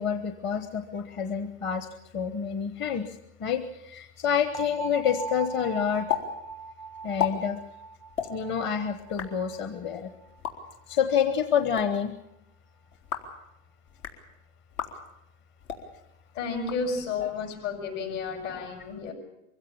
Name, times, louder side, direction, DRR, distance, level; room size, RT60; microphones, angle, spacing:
voice 1, 0.0-1.9 2.1-6.1 7.0-7.6 8.3-10.1 10.9-12.1, left 7 dB, 25° left, 8 dB, 1.0 m, -28 dB
sound 1, 4.5-10.4, right 5 dB, 10° left, 0.7 m, -40 dB
sound 2, 6.1-6.2 6.5-6.6 7.0-7.3 8.1-8.3 9.0-9.3 10.3-10.5 11.5-11.9 12.9-13.3 13.9-14.2 14.7-14.9 15.6-15.8 16.5-17.2, left 10 dB, 75° left, 3.9 m, -33 dB
voice 2, 16.3-19.1, left 4 dB, 60° left, 4 dB, 7.3 m, -32 dB
23.5 x 16.0 x 8.7 m, 0.86 s
supercardioid pair, 140°, 42 cm